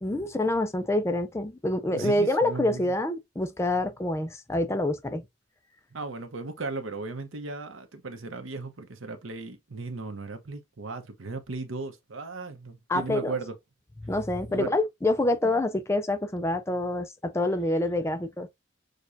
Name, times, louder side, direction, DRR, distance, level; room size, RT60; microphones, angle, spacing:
voice 1, 0.0-5.2 12.9-13.4 14.0-18.5, left 1 dB, 15° left, 0.4 m, -27 dB
voice 2, 1.9-2.9 5.9-13.5 14.5-14.7 15.4-15.5, right 3 dB, 85° right, 0.9 m, -36 dB
6.5 x 2.3 x 2.6 m
head